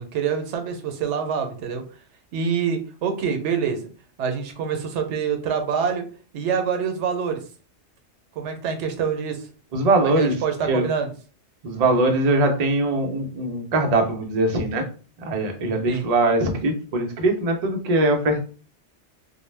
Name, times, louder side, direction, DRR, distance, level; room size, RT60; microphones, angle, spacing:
voice 1, 0.0-1.8 2.3-3.8 4.2-6.0 6.3-7.4 8.3-9.5 10.0-11.1 15.9-16.1, right 6 dB, 90° right, 5 dB, 0.9 m, -26 dB
voice 2, 9.7-10.3 10.6-10.9 11.6-14.9 15.2-18.4, right 2 dB, 50° right, 3 dB, 0.5 m, -21 dB
2.2 x 2.0 x 3.1 m, 0.38 s
omnidirectional pair, 1.2 m